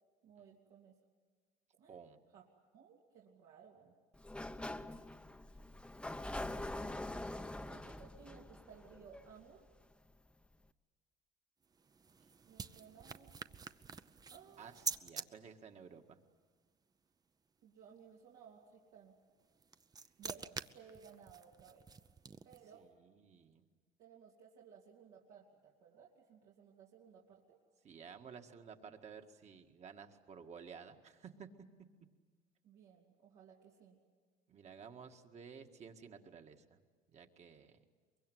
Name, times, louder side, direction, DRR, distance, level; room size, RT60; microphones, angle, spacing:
voice 1, 0.2-0.9 1.8-1.9 2.3-2.4 2.7-3.9 7.7-9.6 12.4-13.3 14.3-14.9 17.6-19.1 20.2-21.9 22.4-22.9 24.0-27.6 32.6-34.0, right 7 dB, 80° right, -3 dB, 3.0 m, -59 dB
voice 2, 1.9-2.2 14.6-16.2 22.8-23.6 27.8-31.5 34.5-36.8 37.1-37.8, right 6 dB, 45° right, 5 dB, 1.9 m, -54 dB
Sliding door, 4.1-9.8, left 1 dB, 5° left, 0.8 m, -44 dB
sound 1, 11.6-15.3 19.4-22.8, right 5 dB, 25° right, 0.7 m, -47 dB
23.5 x 22.5 x 9.4 m, 1.5 s
cardioid pair, 115°, 16 cm